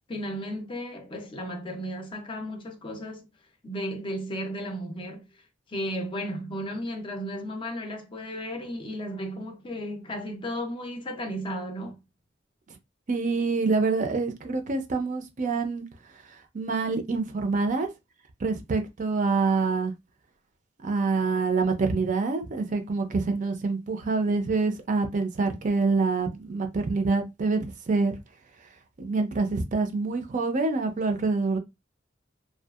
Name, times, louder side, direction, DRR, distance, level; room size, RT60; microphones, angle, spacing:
voice 1, 0.1-3.3 3.6-5.2 5.7-12.0, equal, 25° left, 0.5 m, -34 dB
voice 2, 13.1-15.9 16.5-17.9 18.4-19.9 20.8-28.1 29.0-31.6, right 4 dB, 45° right, 0.5 m, -26 dB
2.6 x 2.3 x 2.3 m
head